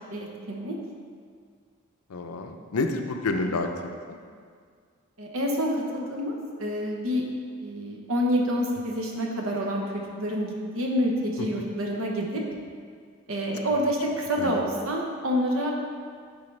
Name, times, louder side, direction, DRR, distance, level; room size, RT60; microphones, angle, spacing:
voice 1, 0.1-0.7 5.2-7.2 7.6-12.4 13.3-15.7, equal, 65° right, 0 dB, 1.0 m, -28 dB
voice 2, 2.1-4.2 11.4-11.6 14.4-14.5, left 2 dB, 85° left, 5 dB, 0.6 m, -29 dB
9.9 x 4.0 x 3.3 m, 2.1 s
head